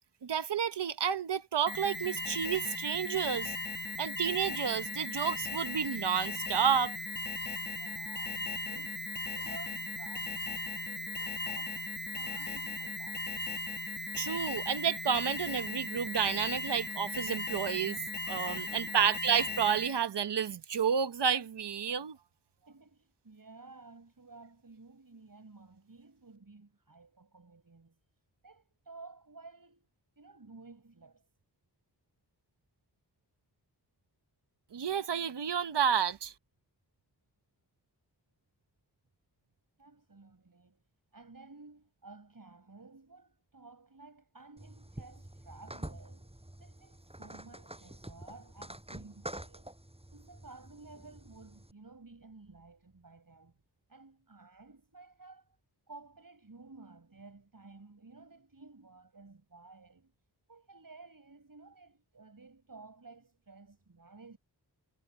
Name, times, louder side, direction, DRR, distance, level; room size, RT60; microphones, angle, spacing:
voice 1, 0.2-3.6 4.0-7.0 14.2-18.0 18.3-22.2 34.7-36.3, right 7 dB, 85° right, 0.9 m, -30 dB
Alarm, 1.7-20.1, left 2 dB, 25° left, 1.0 m, -37 dB
voice 2, 7.6-13.5 18.7-19.3 22.7-28.0 28.4-29.9 30.2-31.3 39.8-40.8 41.1-46.3 46.6-49.7 50.1-53.6 53.9-55.6 55.9-60.1 60.5-64.4, right 3 dB, 55° right, 7.7 m, -54 dB
sound 1, 44.6-51.7, right 1 dB, 15° right, 7.8 m, -47 dB
wide cardioid pair, 70°, 40 cm